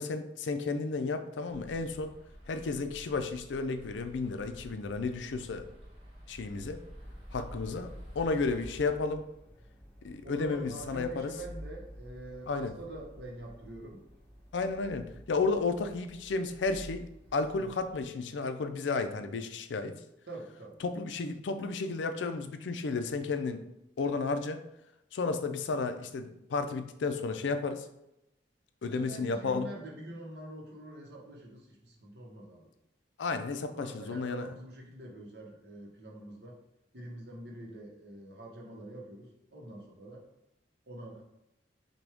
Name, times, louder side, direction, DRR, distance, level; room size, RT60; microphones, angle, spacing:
voice 1, 0.0-2.1 2.5-5.6 6.3-6.8 7.3-9.2 10.0-11.3 12.5-12.7 14.5-17.1 17.3-19.9 20.8-23.6 24.0-24.6 25.1-27.9 28.8-29.7 33.2-34.5, left 4 dB, 85° left, 8 dB, 0.4 m, -32 dB
sound 1, 1.5-8.8, equal, 30° right, 1.2 m, -50 dB
sound 2, 7.0-18.1, equal, 10° left, 0.7 m, -51 dB
voice 2, 10.2-14.1 17.6-17.8 20.3-20.8 28.9-32.7 33.7-36.6 36.9-40.3 40.9-41.2, right 1 dB, 65° right, -1 dB, 1.0 m, -45 dB
6.0 x 2.3 x 3.4 m, 0.85 s
head